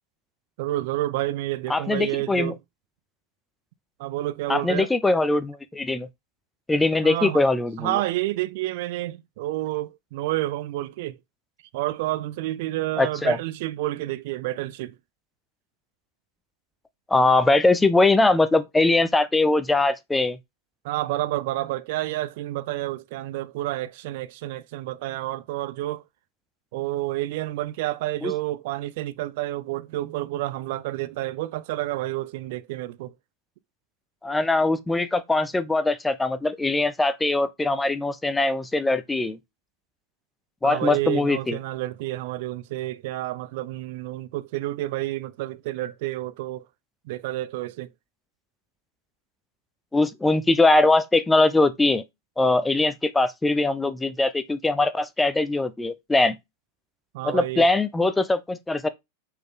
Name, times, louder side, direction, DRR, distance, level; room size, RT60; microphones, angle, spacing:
voice 1, 0.6-2.6 4.0-4.9 7.0-7.4 7.8-11.2 11.7-14.9 20.8-26.0 26.7-33.1 40.6-46.6 47.1-47.9 57.1-57.6, right 16 dB, 50° right, 0.6 m, -29 dB
voice 2, 1.7-2.5 4.5-6.1 6.7-8.0 13.0-13.4 17.1-20.4 28.2-28.3 34.2-39.4 40.6-41.6 49.9-52.0 52.4-56.4 57.2-58.9, left 2 dB, 10° left, 0.7 m, -21 dB
9.2 x 4.7 x 3.8 m
figure-of-eight pair, 90°, 0 cm